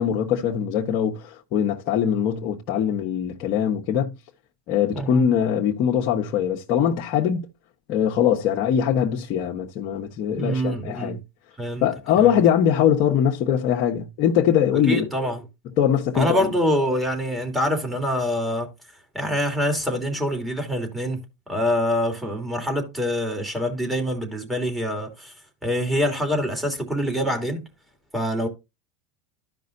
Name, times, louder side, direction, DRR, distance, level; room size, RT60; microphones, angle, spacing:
voice 1, 0.0-4.1 4.7-7.5 7.9-11.2 11.8-15.1 15.8-16.5, left 9 dB, 55° left, 1.2 m, -22 dB
voice 2, 4.9-5.2 10.3-11.2 11.6-11.9 12.2-12.3 14.9-15.4 16.1-18.7 19.1-21.2 21.5-25.3 25.6-27.6 28.1-28.5, equal, 5° right, 2.9 m, -25 dB
13.5 x 5.3 x 2.6 m
hypercardioid pair, 110°, 0 cm